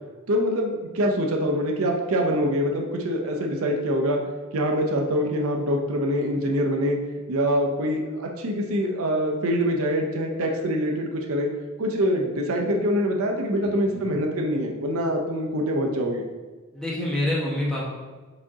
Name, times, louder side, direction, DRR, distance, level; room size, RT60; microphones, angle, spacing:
voice 1, 0.3-4.2 4.5-7.0 7.3-11.5 11.8-16.3, equal, 70° right, 1 dB, 0.6 m, -24 dB
voice 2, 13.6-14.1 16.7-17.9, left 1 dB, 5° left, -6 dB, 1.0 m, -27 dB
4.9 x 2.8 x 3.6 m, 1.3 s
head